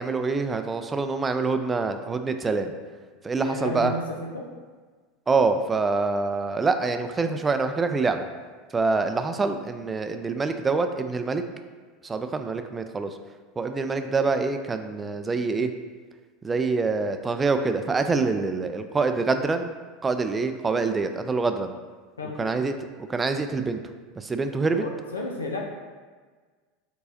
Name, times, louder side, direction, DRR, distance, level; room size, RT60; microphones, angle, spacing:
voice 1, 0.0-2.7 3.2-3.9 5.3-8.2 8.7-11.4 12.0-13.1 13.6-15.7 16.4-19.7 20.0-21.7 22.4-22.7 23.1-23.8 24.2-24.8, right 4 dB, 20° right, 8 dB, 0.4 m, -25 dB
voice 2, 3.4-4.5 22.2-22.5 24.7-25.6, left 2 dB, 90° left, 0 dB, 0.6 m, -32 dB
4.7 x 3.9 x 2.7 m, 1.4 s
hypercardioid pair, 85°, 0 cm